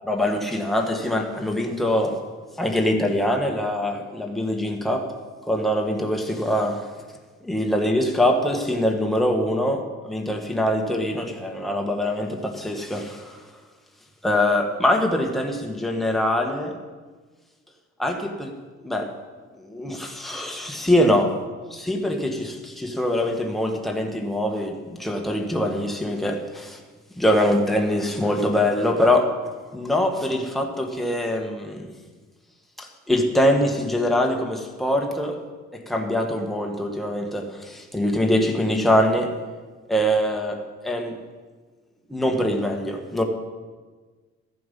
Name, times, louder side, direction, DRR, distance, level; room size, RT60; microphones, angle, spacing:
voice 1, 0.1-2.2 2.6-5.1 5.5-6.9 7.4-13.4 14.2-16.8 18.0-18.5 18.8-19.1 19.6-21.4 21.7-26.8 27.2-29.3 29.7-31.9 32.8-35.4 35.7-39.4 39.9-41.2 42.1-43.2, left 1 dB, ahead, 2 dB, 1.4 m, -23 dB
14.0 x 7.8 x 5.3 m, 1.4 s
cardioid pair, 90°, 30 cm